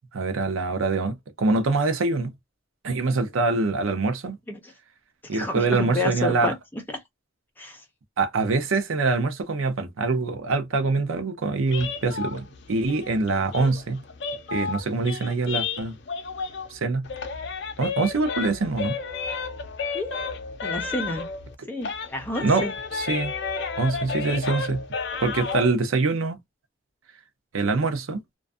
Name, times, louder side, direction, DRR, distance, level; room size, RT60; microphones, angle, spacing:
voice 1, 0.1-2.3 2.8-4.4 5.3-6.5 8.2-14.0 14.5-16.0 16.7-17.1 17.8-19.0 22.4-22.6 22.9-23.3 23.8-24.8 25.2-26.4 27.5-28.2, right 3 dB, 85° right, 0.6 m, -24 dB
voice 2, 5.3-7.0 7.6-7.8 19.9-21.3 21.7-22.7, left 1 dB, 10° left, 0.6 m, -30 dB
sound 1, 11.7-16.8 17.0-21.5 21.8-25.7, left 5 dB, 60° left, 0.5 m, -32 dB
2.5 x 2.2 x 2.3 m
head